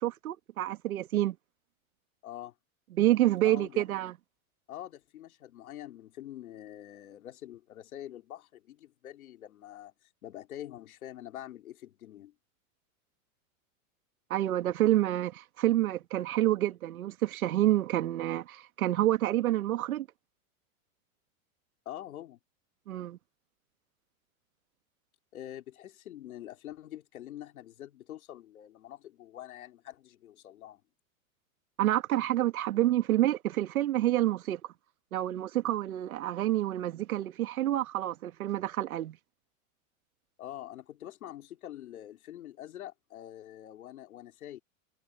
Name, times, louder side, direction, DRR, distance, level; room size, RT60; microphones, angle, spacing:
voice 1, 0.0-1.4 2.9-4.1 14.3-20.1 22.9-23.2 31.8-34.6 35.1-39.2, right 14 dB, 85° right, 2.2 m, -28 dB
voice 2, 2.2-2.5 3.4-3.8 4.7-9.9 10.2-12.3 21.9-22.4 25.3-30.8 40.4-44.6, left 12 dB, 85° left, 4.2 m, -45 dB
hypercardioid pair, 120°, 42 cm